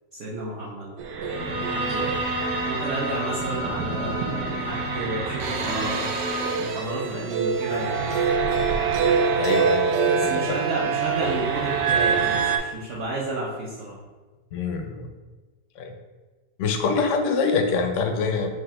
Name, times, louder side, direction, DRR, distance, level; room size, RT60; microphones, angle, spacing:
voice 1, 0.2-2.2 2.6-6.1 6.5-8.0 10.1-14.0, right 2 dB, 55° right, -6 dB, 1.0 m, -31 dB
sound 1, 1.0-12.6, right 6 dB, 85° right, 1.2 m, -25 dB
Bowed string instrument, 1.3-6.7, equal, 20° left, 0.5 m, -31 dB
voice 2, 9.3-10.4 14.5-15.1 15.8-15.9 16.6-18.5, left 4 dB, 65° left, 5 dB, 0.8 m, -25 dB
4.8 x 2.4 x 4.2 m, 1.3 s
omnidirectional pair, 1.8 m